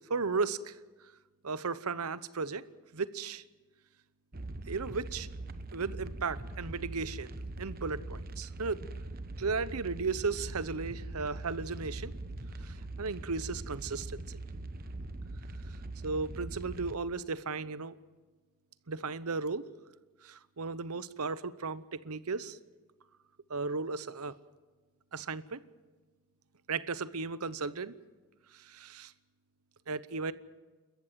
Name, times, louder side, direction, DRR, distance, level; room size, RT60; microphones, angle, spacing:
voice 1, 0.1-0.8 1.4-2.6 2.9-3.4 4.7-5.3 5.7-7.3 7.6-8.8 9.4-12.1 12.6-14.4 16.0-18.0 18.9-19.6 20.2-22.6 23.5-24.3 25.1-25.6 26.7-27.9 28.5-29.1 29.9-30.3, right 4 dB, 85° right, 16 dB, 0.9 m, -35 dB
sound 1, 4.3-17.0, right 2 dB, 40° right, 1.0 m, -42 dB
30.0 x 14.5 x 7.6 m, 1.3 s
head